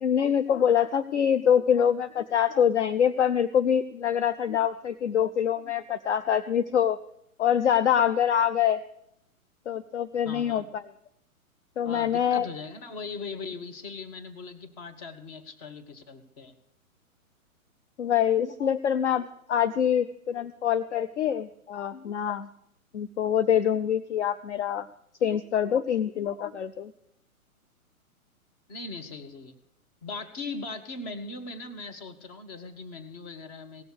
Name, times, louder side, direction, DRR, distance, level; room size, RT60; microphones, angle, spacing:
voice 1, 0.0-7.0 7.4-8.8 9.7-10.8 11.8-12.5 18.0-22.5 22.9-24.9 25.2-26.9, left 9 dB, 55° left, 12 dB, 0.5 m, -25 dB
voice 2, 10.2-10.6 11.8-16.5 28.7-29.6 30.0-33.8, left 3 dB, 25° left, 8 dB, 1.1 m, -39 dB
17.0 x 6.8 x 6.3 m, 0.77 s
figure-of-eight pair, 120°, 43 cm